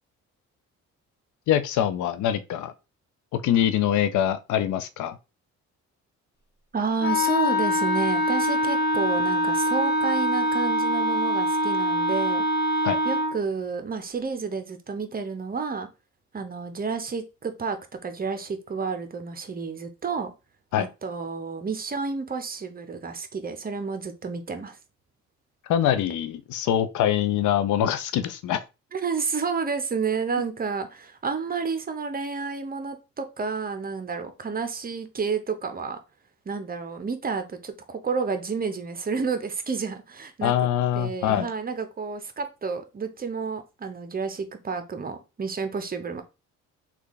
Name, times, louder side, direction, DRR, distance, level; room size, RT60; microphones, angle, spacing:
voice 1, 1.5-2.7 3.3-5.2 12.8-13.0 20.7-20.9 25.7-28.6 40.4-41.5, left 10 dB, 80° left, 0.5 m, -24 dB
voice 2, 6.7-12.4 13.0-15.9 16.3-17.8 18.0-20.3 20.8-24.8 28.9-36.0 36.5-40.5 40.9-46.2, right 5 dB, 30° right, 0.7 m, -30 dB
Wind instrument woodwind instrument, 7.0-13.4, equal, 35° left, 0.7 m, -24 dB
3.2 x 2.4 x 3.8 m
cardioid pair, 90°, 30 cm